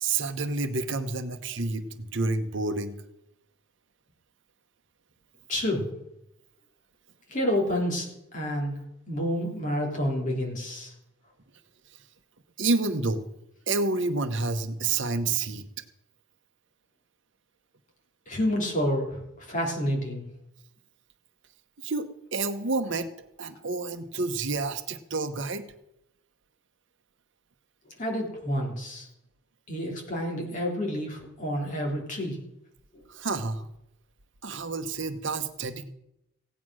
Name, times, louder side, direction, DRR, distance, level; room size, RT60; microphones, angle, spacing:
voice 1, 0.0-3.0 12.6-13.3 13.7-15.6 21.8-23.1 23.4-25.7 33.1-33.7 34.4-35.9, right 3 dB, 60° right, 9 dB, 1.0 m, -29 dB
voice 2, 5.5-5.9 7.3-8.7 9.1-10.9 18.3-20.2 28.0-29.1 29.7-32.4 32.9-33.0, equal, 35° left, 0 dB, 3.6 m, -29 dB
16.5 x 9.4 x 6.3 m, 0.82 s
head